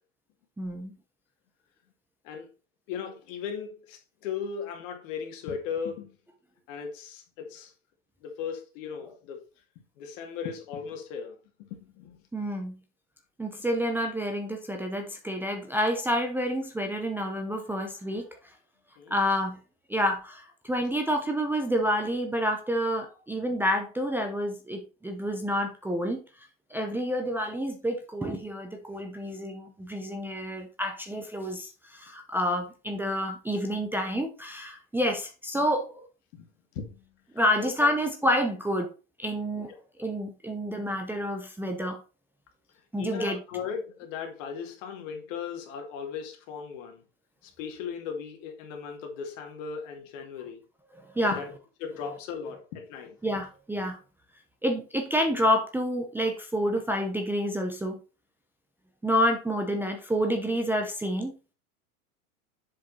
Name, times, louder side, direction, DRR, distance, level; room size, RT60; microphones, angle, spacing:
voice 1, 0.6-0.9 12.3-12.7 13.4-18.3 19.1-19.6 19.9-26.2 26.7-36.0 37.3-38.9 39.2-39.7 40.0-42.0 42.9-43.4 51.1-51.4 53.2-54.0 54.6-58.0 59.0-61.3, equal, 5° right, 0.7 m, -28 dB
voice 2, 2.9-6.2 6.7-7.7 8.2-9.4 10.0-12.2 19.0-19.2 36.3-36.5 36.7-37.1 37.6-37.9 43.0-47.0 47.4-50.6 51.2-51.5 51.8-53.2, left 6 dB, 60° left, 2.3 m, -37 dB
7.3 x 5.0 x 4.1 m
supercardioid pair, 130°, 44 cm